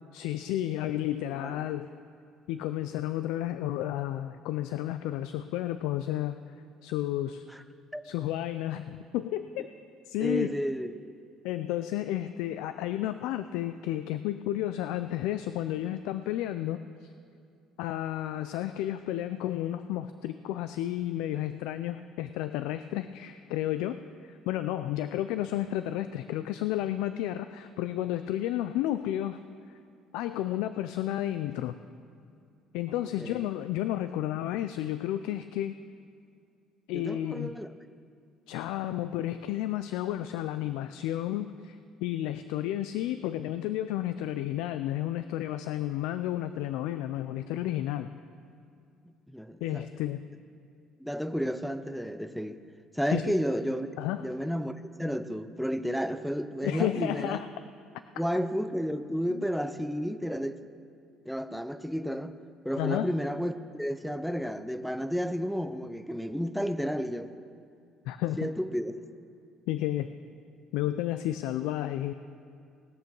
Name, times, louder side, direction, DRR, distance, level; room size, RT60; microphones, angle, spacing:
voice 1, 0.1-1.9 2.5-6.4 6.8-7.4 8.0-9.7 10.1-10.6 11.4-17.1 17.8-29.4 30.1-31.8 32.7-35.8 36.9-37.5 38.5-48.1 49.6-50.2 53.1-53.3 54.0-54.3 56.6-57.5 59.3-59.4 62.8-63.1 68.1-68.5 69.7-70.1 70.7-72.1, left 13 dB, 90° left, 11 dB, 0.4 m, -32 dB
voice 2, 10.2-10.9 33.2-33.4 36.9-37.7 49.3-49.9 51.0-52.6 52.9-53.9 54.2-57.4 58.2-60.6 61.3-62.3 62.6-67.3 68.4-68.9, equal, ahead, 11 dB, 0.5 m, -32 dB
19.0 x 7.0 x 6.1 m, 2.4 s
cardioid pair, 130°, 0 cm